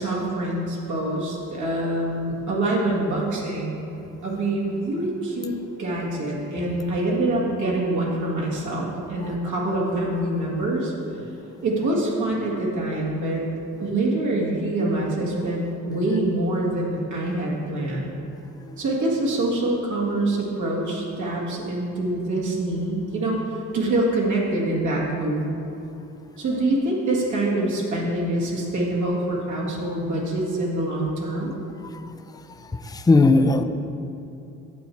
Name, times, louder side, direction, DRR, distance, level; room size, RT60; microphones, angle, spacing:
voice 1, 0.0-3.8 4.2-10.9 11.6-13.4 13.8-18.2 18.8-25.4 26.4-31.5, right 1 dB, 75° right, -4 dB, 1.9 m, -25 dB
voice 2, 32.6-33.6, left 3 dB, 15° left, 8 dB, 0.4 m, -19 dB
9.4 x 7.0 x 4.5 m, 2.8 s
cardioid pair, 90°, 30 cm